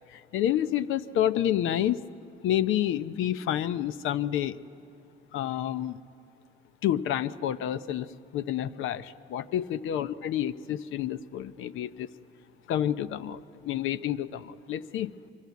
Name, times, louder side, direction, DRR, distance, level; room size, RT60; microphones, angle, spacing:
voice 1, 0.1-2.0 2.4-4.6 5.3-6.0 6.8-8.1 8.3-12.1 12.7-15.1, left 11 dB, 85° left, 14 dB, 0.7 m, -29 dB
24.0 x 23.5 x 8.3 m, 2.8 s
cardioid pair, 90°, 20 cm